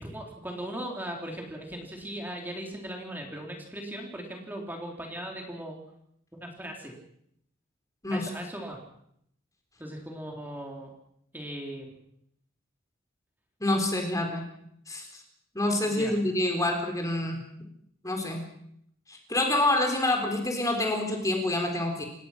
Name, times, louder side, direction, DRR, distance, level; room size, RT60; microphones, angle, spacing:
voice 1, 0.0-5.8 6.3-6.9 8.1-8.8 9.8-10.9 11.3-11.9 15.8-16.1, right 1 dB, 10° right, 1 dB, 4.0 m, -38 dB
voice 2, 13.6-14.4 14.9-15.1 15.5-17.4 18.0-18.5 19.1-22.0, left 1 dB, 15° left, 3 dB, 3.9 m, -27 dB
29.5 x 17.0 x 6.1 m, 0.72 s
head